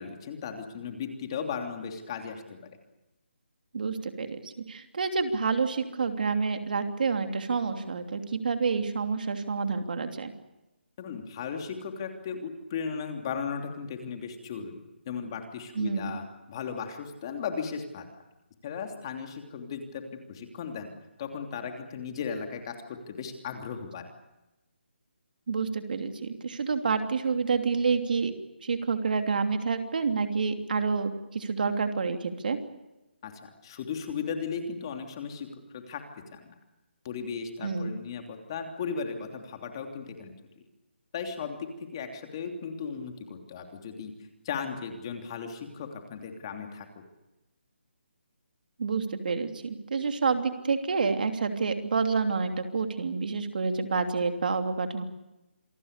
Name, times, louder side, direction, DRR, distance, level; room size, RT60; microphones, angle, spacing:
voice 1, 0.0-2.6 11.0-18.0 18.6-20.0 20.3-20.9 21.2-24.0 33.2-36.0 36.3-36.5 37.0-40.6 41.1-44.1 44.4-47.0, left 6 dB, 25° left, 4 dB, 3.0 m, -36 dB
voice 2, 3.7-10.3 15.7-16.1 25.5-28.3 28.6-32.6 37.6-37.9 48.8-55.0, right 5 dB, 50° right, 6 dB, 3.0 m, -28 dB
27.5 x 22.0 x 6.7 m, 0.98 s
hypercardioid pair, 170°, 6 cm